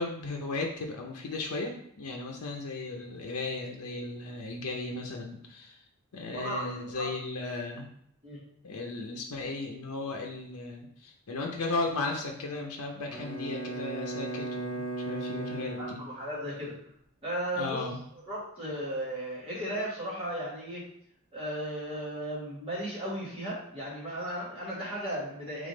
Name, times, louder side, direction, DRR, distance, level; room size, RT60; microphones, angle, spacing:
voice 1, 0.0-5.8 6.1-7.9 8.6-16.0 17.6-18.0, left 3 dB, 90° left, 1 dB, 0.6 m, -35 dB
voice 2, 6.3-7.0 8.2-8.4 15.8-16.7 17.2-17.9 18.3-20.8 21.3-25.7, equal, 25° right, -8 dB, 1.5 m, -35 dB
Bowed string instrument, 13.1-16.7, right 2 dB, 60° left, 0.9 m, -37 dB
3.6 x 3.4 x 3.8 m, 0.70 s
head